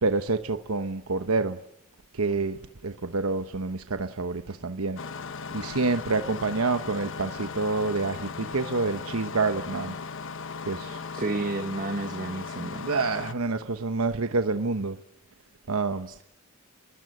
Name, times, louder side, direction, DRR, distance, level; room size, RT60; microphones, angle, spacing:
voice 1, 0.0-1.6 2.1-2.6 2.8-5.0 5.5-9.9 10.7-11.0 12.8-15.0 15.7-16.1, right 3 dB, 75° right, 1.1 m, -27 dB
Engine starting, 5.0-13.3, left 5 dB, 60° left, 1.2 m, -37 dB
voice 2, 11.1-12.9 16.1-16.2, right 2 dB, 40° right, 1.4 m, -31 dB
30.0 x 22.0 x 7.9 m
head